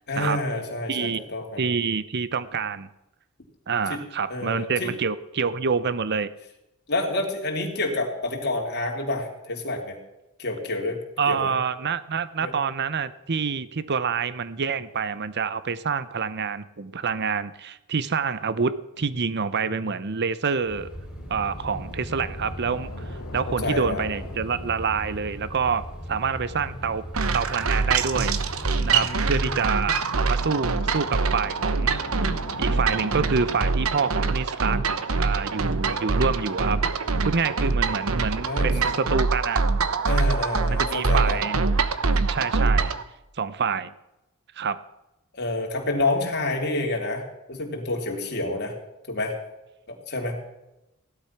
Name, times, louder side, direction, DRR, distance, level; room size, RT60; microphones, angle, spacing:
voice 1, 0.1-1.6 3.9-4.0 4.3-4.9 6.9-10.0 10.4-11.0 11.3-11.5 12.4-12.5 19.7-19.9 23.5-24.0 28.8-29.6 38.5-39.0 40.0-41.4 45.3-48.7 49.1-49.3 49.9-50.4, left 2 dB, 50° left, 1 dB, 3.4 m, -28 dB
voice 2, 0.9-1.2 1.6-2.9 3.7-6.3 11.2-20.9 21.3-27.0 27.3-28.3 28.8-32.0 32.6-34.8 35.2-36.8 37.2-39.6 40.7-41.6 42.3-42.9 43.4-43.9 44.6-44.8, right 5 dB, 50° right, 15 dB, 0.7 m, -27 dB
sound 1, 20.6-34.1, left 2 dB, 80° left, 2.0 m, -41 dB
sound 2, 20.7-29.6, equal, 5° right, 3.7 m, -38 dB
sound 3, 27.1-43.0, right 4 dB, 75° right, 1.1 m, -24 dB
17.0 x 12.0 x 5.9 m, 0.96 s
head